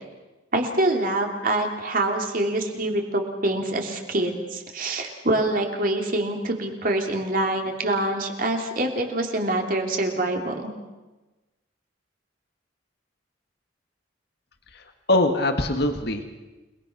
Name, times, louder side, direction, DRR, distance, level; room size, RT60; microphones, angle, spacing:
voice 1, 0.5-10.7, right 1 dB, 45° right, 2 dB, 3.2 m, -25 dB
voice 2, 14.7-16.2, left 1 dB, 55° left, 6 dB, 1.9 m, -23 dB
29.5 x 20.5 x 6.1 m, 1.1 s
head